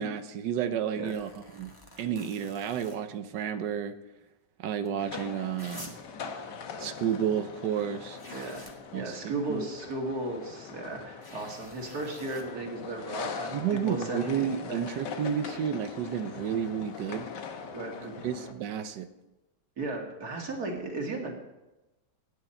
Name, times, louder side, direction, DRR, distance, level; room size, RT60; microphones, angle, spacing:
voice 1, 0.0-4.0 4.6-5.9 6.8-8.2 8.9-9.6 13.5-17.3 18.2-19.1, right 8 dB, 85° right, 10 dB, 1.4 m, -31 dB
sound 1, 1.0-3.0 4.9-5.0 5.6-6.1 7.8-7.9 8.2-8.8 11.2-12.4 14.7-14.8, left 1 dB, 15° left, 1.5 m, -48 dB
sound 2, 5.0-18.5, left 5 dB, 80° left, 1.7 m, -42 dB
voice 2, 8.3-8.7 8.9-14.8 17.7-18.1 19.8-21.3, right 2 dB, 60° right, 1 dB, 2.6 m, -35 dB
15.5 x 9.5 x 4.3 m, 1.0 s
omnidirectional pair, 1.9 m